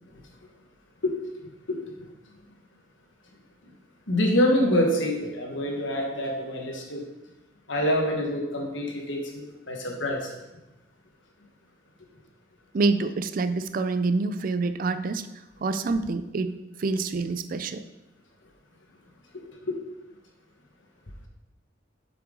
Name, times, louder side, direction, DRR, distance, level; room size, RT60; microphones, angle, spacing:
voice 1, 4.1-7.0 7.7-10.3 19.6-19.8, left 1 dB, 85° left, 1 dB, 1.4 m, -26 dB
voice 2, 12.7-15.3 15.6-17.8, right 3 dB, 45° right, 11 dB, 0.4 m, -27 dB
7.7 x 5.7 x 3.8 m, 1.0 s
head